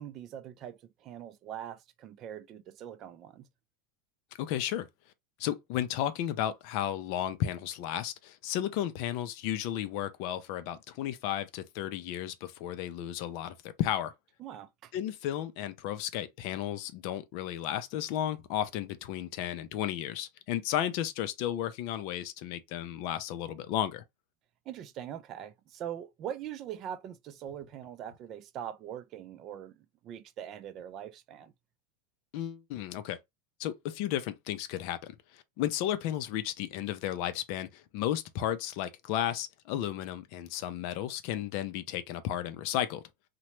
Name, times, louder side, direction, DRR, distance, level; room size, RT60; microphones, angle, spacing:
voice 1, 0.0-3.5 14.4-14.9 24.7-29.8 30.0-31.5, right 10 dB, 35° right, 0.3 m, -42 dB
voice 2, 4.4-4.9 5.4-14.1 14.9-24.0 32.3-33.2 33.6-43.0, left 11 dB, 55° left, 0.4 m, -33 dB
2.9 x 2.1 x 3.0 m
supercardioid pair, 140°, 0 cm